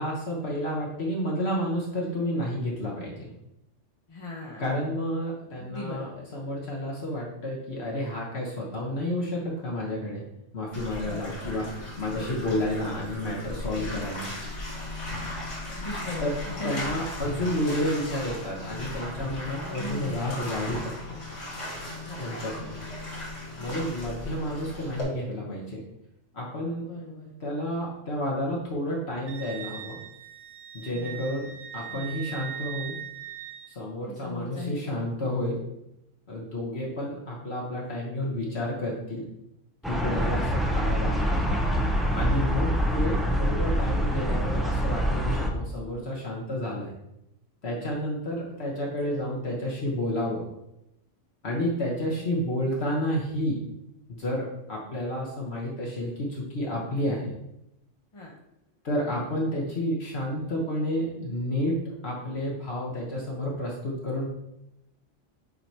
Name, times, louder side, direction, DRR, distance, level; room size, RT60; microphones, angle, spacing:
voice 1, 0.0-3.3 4.6-10.2 10.5-11.7 12.0-14.3 16.2-16.4 16.6-21.2 22.2-22.9 23.6-25.8 26.3-26.9 27.4-30.0 30.7-31.5 31.7-33.0 33.7-35.6 36.3-39.2 39.9-41.4 42.1-46.9 47.6-50.4 51.4-53.6 54.2-57.3 58.8-64.3, left 1 dB, 60° left, -4 dB, 1.4 m, -30 dB
voice 2, 4.1-4.6 5.6-6.2 11.0-11.5 12.1-12.5 13.7-14.0 15.7-16.9 19.6-20.2 22.1-22.6 23.5-24.0 26.8-27.3 30.9-31.4 31.9-32.1 34.0-35.4 40.0-40.5 42.5-42.8 47.7-48.0 52.1-52.6 57.1-57.2 58.1-58.3, left 2 dB, 30° left, -3 dB, 0.8 m, -39 dB
Bathtub (filling or washing), 10.7-25.0, left 1 dB, 80° left, 1.9 m, -37 dB
Wind instrument woodwind instrument, 29.3-33.7, right 9 dB, 55° right, 0.5 m, -40 dB
sound 1, 39.8-45.5, equal, ahead, 0.4 m, -25 dB
8.0 x 2.9 x 4.5 m, 0.85 s
omnidirectional pair, 1.3 m